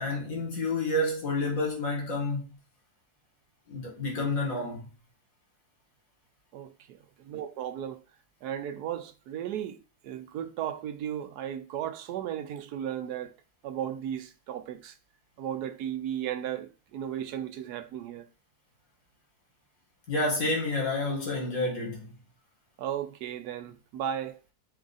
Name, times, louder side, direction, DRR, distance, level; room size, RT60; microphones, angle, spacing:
voice 1, 0.0-2.4 3.7-4.9 20.1-22.2, left 2 dB, 65° left, 1.8 m, -29 dB
voice 2, 6.5-7.0 7.2-8.0 8.4-9.8 10.0-13.3 13.6-14.9 15.4-18.3 22.8-24.4, right 10 dB, 90° right, 1.2 m, -35 dB
4.5 x 2.5 x 3.9 m
omnidirectional pair, 1.6 m